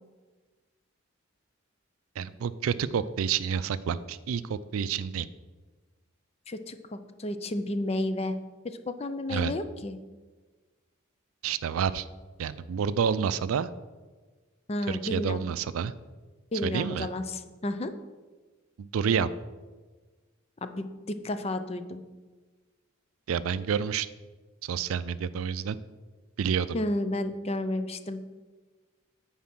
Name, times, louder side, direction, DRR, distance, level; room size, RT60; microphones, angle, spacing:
voice 1, 2.2-5.3 9.3-9.5 11.4-12.1 12.4-13.7 14.9-15.9 16.6-17.1 18.8-19.3 23.3-24.1 24.6-25.8 26.4-26.7, right 7 dB, 85° right, 15 dB, 0.4 m, -29 dB
voice 2, 6.5-8.4 8.6-10.0 14.7-15.4 16.5-17.9 20.6-22.0 26.7-28.2, left 1 dB, 30° left, 10 dB, 0.4 m, -32 dB
9.4 x 4.2 x 6.0 m, 1.3 s
head